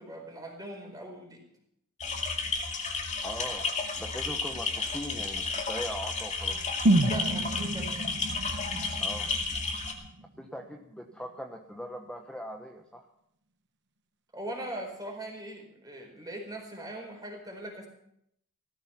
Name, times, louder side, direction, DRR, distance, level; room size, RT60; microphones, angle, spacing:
voice 1, 0.0-1.4 7.1-8.0 14.3-17.9, right 1 dB, 15° right, 2 dB, 4.5 m, -40 dB
sound 1, 2.0-9.9, left 4 dB, 35° left, 2.3 m, -32 dB
voice 2, 3.2-3.6 4.0-6.6 9.0-9.3 10.4-13.1, equal, 5° left, 3 dB, 1.0 m, -40 dB
sound 2, 6.9-10.8 11.1-11.2, right 1 dB, 55° right, 0.9 m, -29 dB
17.0 x 14.5 x 5.8 m, 0.76 s
head